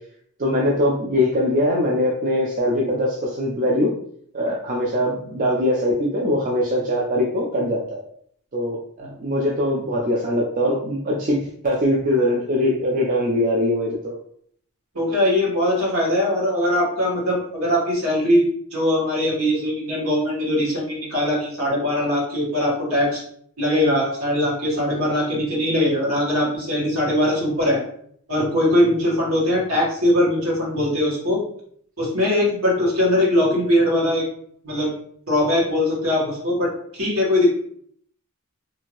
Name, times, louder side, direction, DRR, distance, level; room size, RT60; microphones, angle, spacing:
voice 1, 0.4-3.9 4.3-8.0 8.5-11.4 11.6-14.1, left 1 dB, 35° right, -3 dB, 0.4 m, -22 dB
voice 2, 14.9-23.2 23.6-27.8 28.3-31.4 32.0-34.2 34.6-34.9 35.3-37.5, left 1 dB, 75° right, -4 dB, 1.4 m, -21 dB
2.8 x 2.5 x 2.9 m, 0.63 s
head